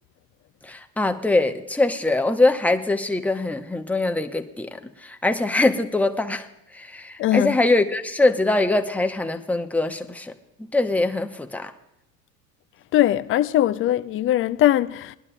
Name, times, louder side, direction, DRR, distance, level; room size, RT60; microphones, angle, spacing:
voice 1, 0.6-10.3 10.6-11.7, left 2 dB, 5° left, 0.9 m, -23 dB
voice 2, 7.2-7.6 12.9-15.2, left 13 dB, 30° left, 0.5 m, -20 dB
21.0 x 12.0 x 2.3 m
hypercardioid pair, 80°, 48 cm